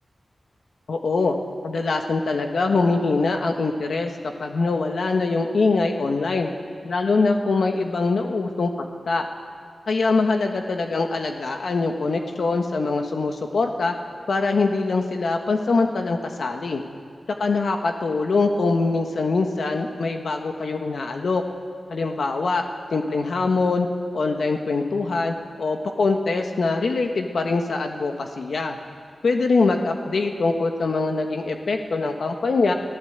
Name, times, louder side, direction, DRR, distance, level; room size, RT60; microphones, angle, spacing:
voice 1, 0.9-1.3 1.6-4.1 4.4-6.5 6.8-8.7 9.1-9.2 9.9-13.9 14.3-16.8 17.4-21.4 21.9-22.7 22.9-23.9 24.1-28.8 29.2-32.7, left 3 dB, 75° left, 4 dB, 1.4 m, -23 dB
25.5 x 16.0 x 8.1 m, 2.3 s
wide cardioid pair, 110°, 0 cm